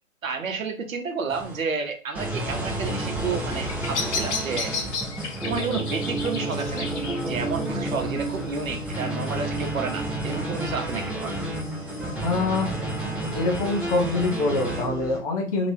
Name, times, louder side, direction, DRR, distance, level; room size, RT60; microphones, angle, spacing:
voice 1, 0.2-4.7 5.5-11.4, right 5 dB, 90° right, 0.9 m, -31 dB
sound 1, 1.3-1.6 2.1-15.2, right 1 dB, 5° right, 1.0 m, -30 dB
Bird vocalization bird call bird song, 3.4-9.4, left 4 dB, 60° left, 0.8 m, -34 dB
voice 2, 12.2-12.7 13.3-15.7, left 3 dB, 30° left, 0.7 m, -25 dB
3.2 x 2.9 x 2.7 m
hypercardioid pair, 145°, 39 cm